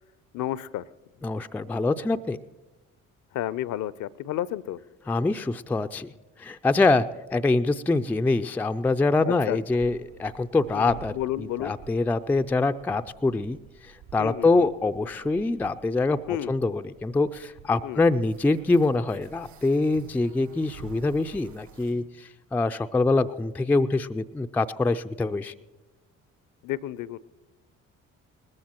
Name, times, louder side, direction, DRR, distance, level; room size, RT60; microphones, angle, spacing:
voice 1, 0.3-0.9 3.3-4.8 9.2-9.6 10.7-11.8 14.2-14.7 16.3-16.6 17.8-18.0 26.6-27.2, left 13 dB, 50° left, 20 dB, 0.6 m, -31 dB
voice 2, 1.2-2.4 5.1-6.1 6.4-7.1 7.3-11.1 11.6-13.6 14.1-16.2 16.5-25.5, left 3 dB, 5° left, 9 dB, 0.4 m, -24 dB
sound 1, 9.7-21.9, right 8 dB, 75° right, 3.0 m, -50 dB
20.0 x 14.5 x 3.0 m, 1.1 s
figure-of-eight pair, 50°, 40 cm